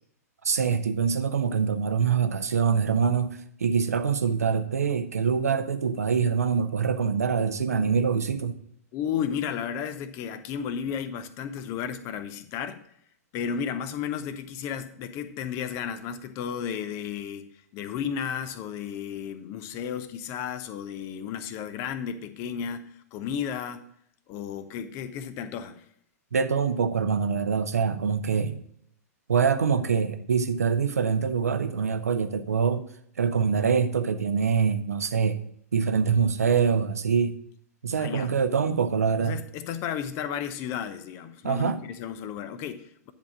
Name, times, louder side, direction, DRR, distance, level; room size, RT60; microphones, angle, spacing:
voice 1, 0.4-8.5 26.3-28.6 29.3-32.8 33.2-35.4 35.7-37.3 37.8-39.4 41.4-41.8, right 6 dB, 70° right, 9 dB, 0.7 m, -24 dB
voice 2, 8.9-12.8 13.3-23.8 24.3-25.8 38.0-38.3 39.2-43.1, left 8 dB, 35° left, 12 dB, 0.7 m, -33 dB
10.5 x 3.6 x 5.9 m, 0.68 s
figure-of-eight pair, 105°, 9 cm